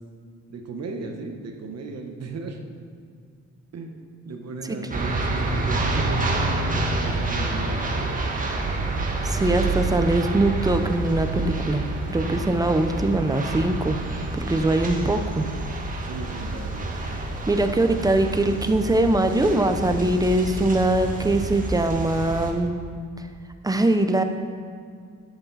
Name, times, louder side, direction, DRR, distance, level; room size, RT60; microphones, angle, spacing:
voice 1, 0.5-2.8 3.7-8.1 16.0-16.9, right 3 dB, 55° right, 3 dB, 1.3 m, -36 dB
sound 1, 4.9-22.5, right 2 dB, 25° right, 1.5 m, -28 dB
voice 2, 9.2-11.8 12.1-13.9 14.3-15.5 17.5-22.7 23.6-24.2, right 2 dB, 10° right, 7 dB, 0.8 m, -22 dB
11.0 x 8.3 x 4.2 m, 2.1 s
cardioid pair, 90°, 30 cm